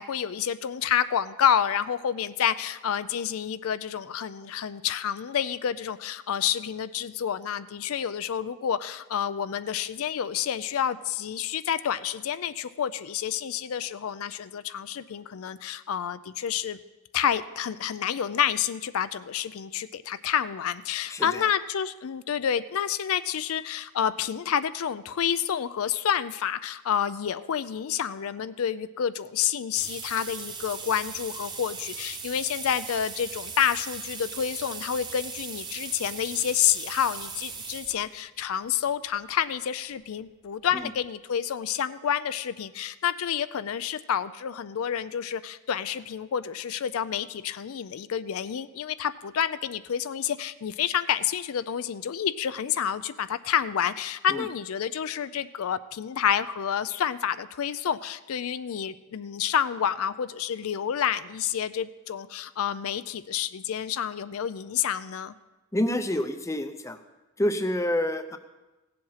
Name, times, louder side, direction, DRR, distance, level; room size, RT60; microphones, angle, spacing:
voice 1, 0.0-16.8 17.1-65.3, left 9 dB, 70° left, 14 dB, 0.4 m, -29 dB
voice 2, 21.1-21.4 40.7-40.9 54.3-54.5 65.7-67.0 67.4-68.4, left 1 dB, 15° left, 9 dB, 0.6 m, -28 dB
sound 1, 29.7-38.0 38.9-39.0 40.2-40.3 40.7-40.8 41.0-41.1, right 5 dB, 20° right, 1.0 m, -38 dB
16.5 x 7.6 x 5.6 m, 1.1 s
head